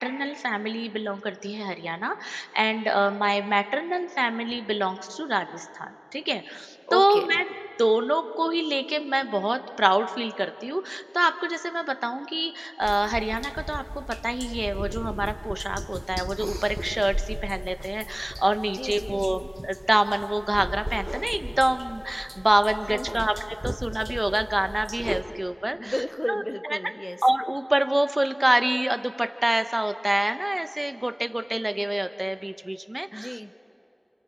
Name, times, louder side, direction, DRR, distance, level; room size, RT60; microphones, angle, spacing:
voice 1, 0.0-7.4 7.8-23.4 23.6-25.9 26.3-26.4 26.7-26.8 27.2-33.4, right 1 dB, 35° right, 9 dB, 1.0 m, -26 dB
voice 2, 6.9-7.3 18.7-19.4 22.9-23.3 25.7-27.2 33.1-33.5, left 1 dB, 25° left, 10 dB, 0.7 m, -33 dB
sound 1, 12.8-25.2, equal, 10° right, 1.2 m, -36 dB
29.0 x 28.5 x 4.6 m, 2.8 s
wide cardioid pair, 45°, 0 cm